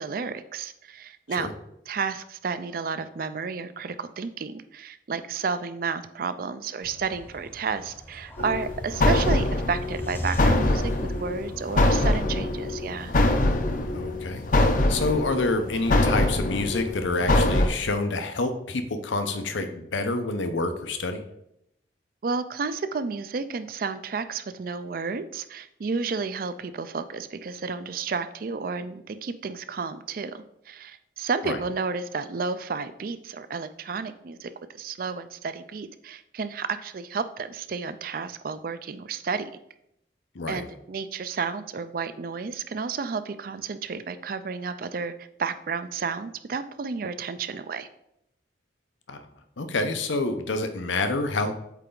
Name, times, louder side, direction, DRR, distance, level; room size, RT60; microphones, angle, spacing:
voice 1, 0.0-1.5 1.9-13.1 22.2-39.5 40.5-47.9, right 5 dB, 50° right, 12 dB, 0.4 m, -32 dB
sound 1, 6.8-11.9, left 1 dB, 10° left, 0.7 m, -37 dB
sound 2, 8.4-17.7, left 2 dB, 45° left, 0.6 m, -24 dB
voice 2, 13.9-21.2 31.4-31.6 40.3-40.7 49.1-49.2 49.6-51.5, left 2 dB, 90° left, 7 dB, 0.8 m, -28 dB
8.1 x 3.4 x 3.8 m, 0.78 s
head